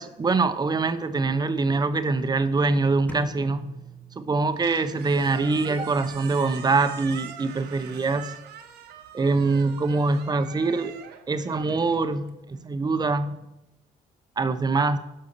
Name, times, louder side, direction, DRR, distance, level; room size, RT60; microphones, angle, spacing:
voice 1, 0.0-3.7 4.2-8.4 9.1-11.0 11.3-13.4 14.4-15.0, right 3 dB, 25° right, 11 dB, 0.9 m, -24 dB
sound 1, 3.1-5.0, right 2 dB, 10° left, 1.4 m, -42 dB
Squeak, 4.4-12.7, right 9 dB, 75° right, 1.3 m, -42 dB
12.0 x 5.6 x 6.9 m, 0.90 s
cardioid pair, 110°, 17 cm